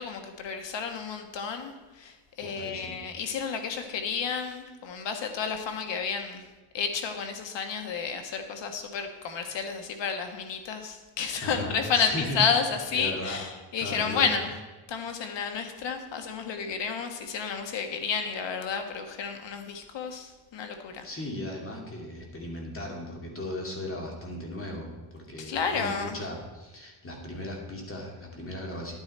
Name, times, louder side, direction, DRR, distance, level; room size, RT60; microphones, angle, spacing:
voice 1, 0.0-6.4 6.7-14.5 14.9-21.0 25.4-26.2, left 6 dB, 65° left, 6 dB, 1.5 m, -31 dB
voice 2, 2.4-3.0 11.4-12.6 12.9-13.4 13.8-14.3 21.0-29.0, left 1 dB, 25° left, 0 dB, 2.5 m, -37 dB
11.0 x 9.7 x 4.3 m, 1.2 s
cardioid pair, 125°, 47 cm